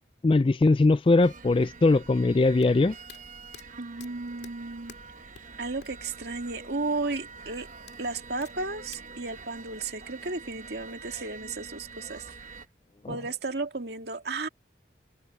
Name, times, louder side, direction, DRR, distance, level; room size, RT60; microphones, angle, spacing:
voice 1, 0.2-2.9, left 3 dB, 30° left, 0.3 m, -21 dB
sound 1, 1.2-12.7, right 4 dB, 45° right, 1.2 m, -46 dB
sound 2, 2.6-6.1 6.4-6.5 7.9-9.1, left 8 dB, 70° left, 2.4 m, -50 dB
voice 2, 3.8-4.9 5.6-7.7 8.0-12.6 13.1-14.5, right 3 dB, 65° right, 2.2 m, -34 dB
head